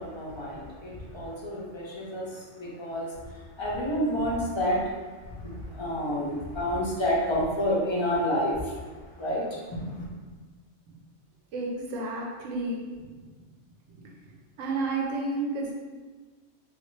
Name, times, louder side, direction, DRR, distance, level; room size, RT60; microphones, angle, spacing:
voice 1, 0.0-3.1 3.6-4.8 5.4-8.8 9.2-10.1, equal, 35° left, -5 dB, 0.5 m, -29 dB
voice 2, 11.5-12.8 13.9-14.0 14.6-15.7, right 2 dB, 75° right, -2 dB, 1.0 m, -31 dB
3.2 x 2.5 x 3.1 m, 1.4 s
omnidirectional pair, 1.3 m